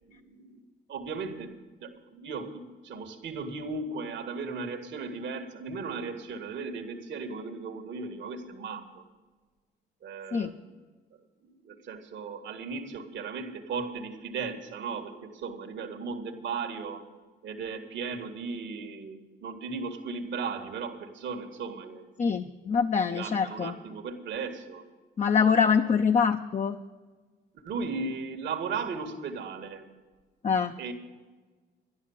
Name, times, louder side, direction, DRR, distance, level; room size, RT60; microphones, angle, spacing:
voice 1, 0.0-0.6 0.9-9.0 10.0-10.8 11.5-17.1 17.4-22.1 23.1-24.9 25.5-25.7 27.5-29.9 30.8-30.9, right 4 dB, 65° right, 6 dB, 1.9 m, -36 dB
voice 2, 22.2-23.8 25.2-26.8 30.4-30.7, left 6 dB, 35° left, 6 dB, 0.7 m, -24 dB
11.5 x 11.0 x 7.2 m, 1.3 s
cardioid pair, 90°, 20 cm